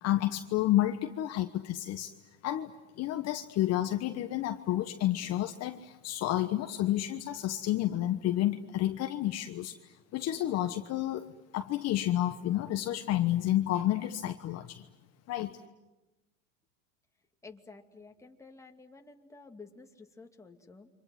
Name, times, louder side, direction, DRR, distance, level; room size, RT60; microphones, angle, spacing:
voice 1, 0.0-2.1 2.4-2.7 3.0-14.8 15.3-15.6, left 13 dB, 40° left, 7 dB, 1.3 m, -30 dB
voice 2, 17.4-20.9, left 4 dB, 10° left, 3 dB, 2.4 m, -51 dB
30.0 x 25.5 x 7.7 m, 1.1 s
hypercardioid pair, 110°, 39 cm